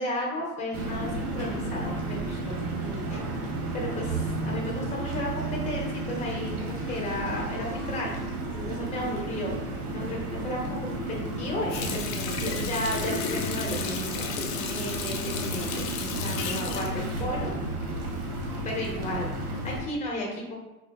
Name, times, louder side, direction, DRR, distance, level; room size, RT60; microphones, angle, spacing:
voice 1, 0.0-3.4 3.7-17.5 18.6-20.5, left 1 dB, 15° left, -2 dB, 0.8 m, -34 dB
sound 1, 0.7-19.8, right 2 dB, 80° right, 1.3 m, -32 dB
sound 2, 9.9-17.7, right 1 dB, 20° right, 0.7 m, -45 dB
Water tap faucet, 11.7-18.1 18.5-18.6, left 6 dB, 40° left, 0.4 m, -34 dB
4.9 x 2.1 x 2.3 m, 1.0 s
supercardioid pair, 115°, 45 cm